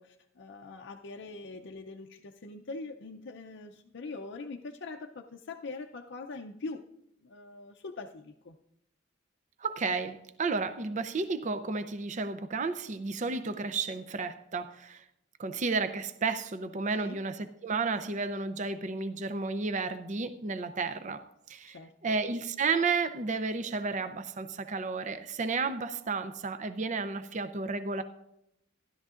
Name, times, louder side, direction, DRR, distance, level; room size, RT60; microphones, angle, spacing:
voice 1, 0.0-6.8 7.2-8.6 17.0-17.2 21.7-22.2, left 3 dB, 60° left, 2 dB, 0.5 m, -43 dB
voice 2, 9.6-15.0 15.4-28.0, right 4 dB, 35° right, 10 dB, 0.5 m, -32 dB
15.5 x 11.5 x 2.5 m, 0.81 s
head